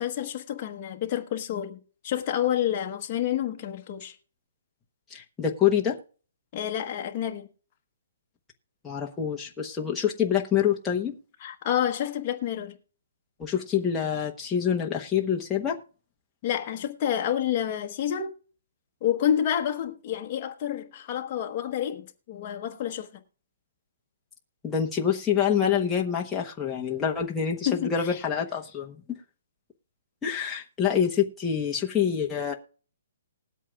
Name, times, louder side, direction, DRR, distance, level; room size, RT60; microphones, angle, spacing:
voice 1, 0.0-1.8 2.0-4.1 6.5-7.5 11.4-12.8 16.4-18.3 19.0-23.1 27.6-28.2, left 10 dB, 30° left, 1.2 m, -29 dB
voice 2, 5.1-6.0 8.8-11.2 13.4-15.8 24.6-29.2 30.2-32.5, left 8 dB, 10° left, 1.0 m, -26 dB
20.0 x 8.3 x 2.4 m
hypercardioid pair, 170°, 0 cm